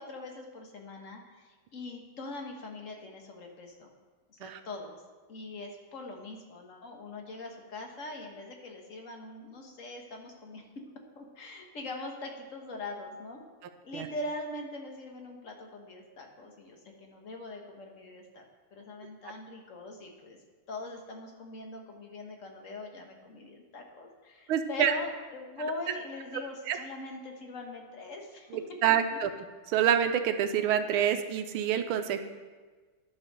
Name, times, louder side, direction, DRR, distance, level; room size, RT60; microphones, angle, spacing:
voice 1, 0.0-3.9 4.3-5.0 5.3-10.6 11.1-13.4 13.8-18.4 18.7-20.4 20.7-28.5 28.9-29.0, left 2 dB, 40° left, 2 dB, 1.5 m, -42 dB
voice 2, 24.5-24.9 26.7-26.8 28.8-29.3 29.7-32.3, right 9 dB, 80° right, 8 dB, 1.5 m, -26 dB
11.0 x 5.7 x 6.7 m, 1.4 s
omnidirectional pair, 2.3 m